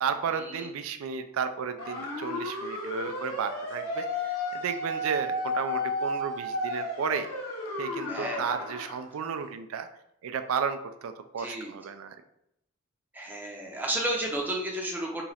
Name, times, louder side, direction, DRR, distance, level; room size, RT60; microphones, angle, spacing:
voice 1, 0.0-7.3 7.8-9.9 10.2-12.2, right 6 dB, 70° right, 9 dB, 0.4 m, -33 dB
sound 1, 1.8-9.0, left 1 dB, 90° left, 1.1 m, -33 dB
voice 2, 8.1-8.5 11.4-11.7 13.1-15.3, right 1 dB, 10° right, -1 dB, 0.6 m, -32 dB
3.0 x 2.4 x 4.1 m, 0.78 s
head